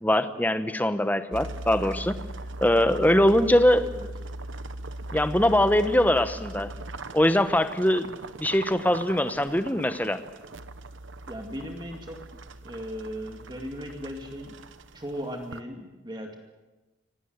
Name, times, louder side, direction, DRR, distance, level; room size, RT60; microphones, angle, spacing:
voice 1, 0.0-2.2 2.6-3.9 5.1-6.7 7.1-10.2, left 1 dB, 10° left, 10 dB, 1.0 m, -22 dB
sound 1, 1.3-15.6, right 2 dB, 75° right, 1.1 m, -40 dB
voice 2, 11.3-14.6 14.9-16.3, equal, 20° right, 3 dB, 2.3 m, -37 dB
25.0 x 18.5 x 8.1 m, 1.1 s
head